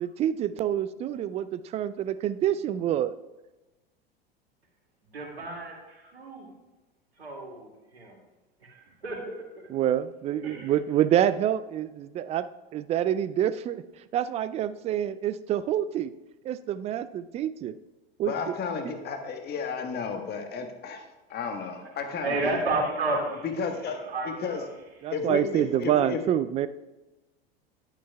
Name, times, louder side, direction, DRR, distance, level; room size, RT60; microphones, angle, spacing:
voice 1, 0.0-3.1 9.7-12.4 12.7-13.8 14.1-16.1 16.4-17.7 18.2-18.3 18.8-18.9 25.0-26.7, right 11 dB, 20° right, 14 dB, 0.3 m, -27 dB
voice 2, 5.0-6.5 7.2-8.2 8.6-9.4 10.4-10.7 11.1-11.2 21.8-21.9 22.2-23.5 23.8-24.7, right 2 dB, 85° right, 0 dB, 2.2 m, -32 dB
voice 3, 18.3-22.5 23.4-24.0 24.3-24.6 25.1-26.2, left 5 dB, 35° left, 5 dB, 1.3 m, -33 dB
11.0 x 8.9 x 2.3 m, 1.1 s
figure-of-eight pair, 85°, 31 cm